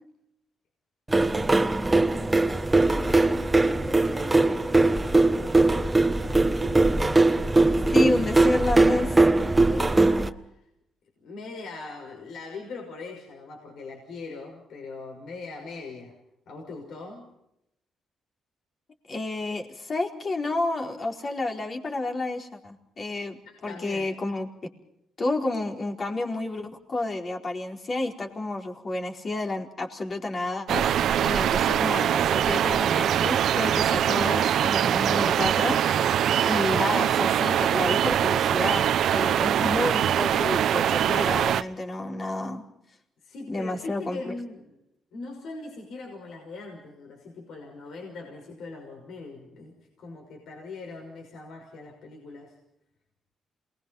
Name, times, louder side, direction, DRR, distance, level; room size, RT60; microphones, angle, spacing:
sound 1, 1.1-10.3, right 2 dB, 15° right, 1.3 m, -21 dB
voice 1, 1.2-7.8 9.6-10.6 11.2-16.2 16.5-17.4 23.4-24.1 36.6-37.0 39.6-39.8 43.2-44.8 45.1-52.6, left 3 dB, 70° left, 1 dB, 5.9 m, -41 dB
voice 2, 7.9-9.2 19.1-24.5 25.2-42.6 43.5-44.3, left 2 dB, 40° left, 2 dB, 4.5 m, -30 dB
sound 2, 30.7-41.6, right 10 dB, 70° right, 0.9 m, -23 dB
27.5 x 21.0 x 5.7 m, 0.79 s
cardioid pair, 90°, 0 cm